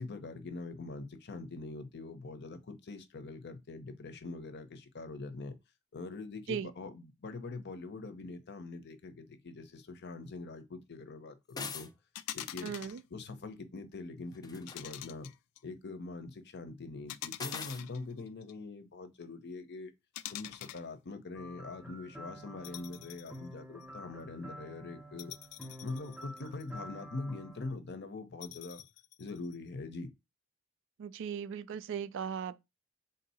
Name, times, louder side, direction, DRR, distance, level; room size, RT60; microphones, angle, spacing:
voice 1, 0.0-5.5 5.9-11.9 12.3-12.7 13.1-15.3 15.6-19.9 20.3-25.3 25.8-28.8 29.2-30.1, left 3 dB, 50° left, 0.7 m, -43 dB
sound 1, 11.5-11.9 14.3-14.8 17.4-17.8, left 5 dB, 20° left, 0.4 m, -41 dB
sound 2, 12.1-13.0 14.7-15.6 17.1-18.5 20.1-20.9 22.6-23.4 23.8-23.9 25.2-26.8 28.4-29.5, left 13 dB, 90° left, 0.3 m, -45 dB
voice 2, 12.6-13.0 31.0-32.6, right 7 dB, 55° right, 0.3 m, -37 dB
sound 3, 21.3-27.7, equal, ahead, 0.9 m, -49 dB
3.7 x 2.7 x 4.1 m
head